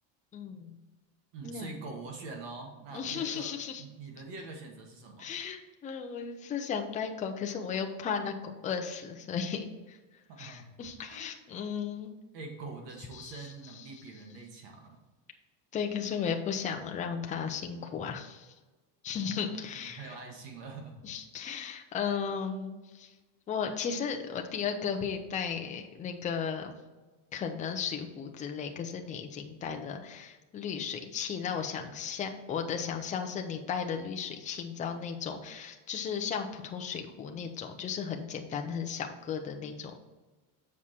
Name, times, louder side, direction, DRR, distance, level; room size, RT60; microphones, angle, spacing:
voice 1, 0.3-0.8 1.4-1.7 2.9-3.8 5.2-10.0 10.4-12.1 13.1-13.4 15.7-18.5 19.0-20.1 21.0-23.1 23.5-26.7 27.3-40.0, left 6 dB, 15° left, 4 dB, 0.4 m, -35 dB
voice 2, 1.3-5.3 10.3-10.7 11.0-11.3 12.3-15.0 19.1-21.0, right 3 dB, 65° right, 2 dB, 1.7 m, -44 dB
7.4 x 4.8 x 4.2 m, 1.2 s
cardioid pair, 175°, 46 cm